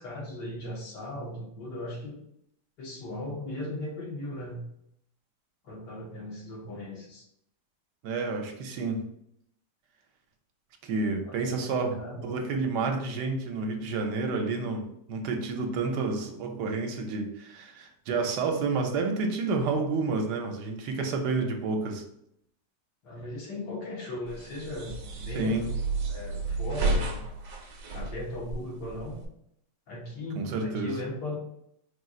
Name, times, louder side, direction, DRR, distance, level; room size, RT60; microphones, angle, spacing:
voice 1, 0.0-2.2 2.8-4.6 5.6-7.3 11.2-12.4 23.0-25.7 26.1-27.2 27.9-29.2 29.9-31.4, left 1 dB, 80° left, -4 dB, 1.9 m, -37 dB
voice 2, 8.0-9.1 10.8-11.9 12.2-22.0 25.3-25.6 30.4-31.0, right 3 dB, 75° right, 4 dB, 1.2 m, -30 dB
sound 1, 24.3-29.3, right 3 dB, 60° right, 1.0 m, -32 dB
4.5 x 2.4 x 3.7 m, 0.75 s
omnidirectional pair, 1.8 m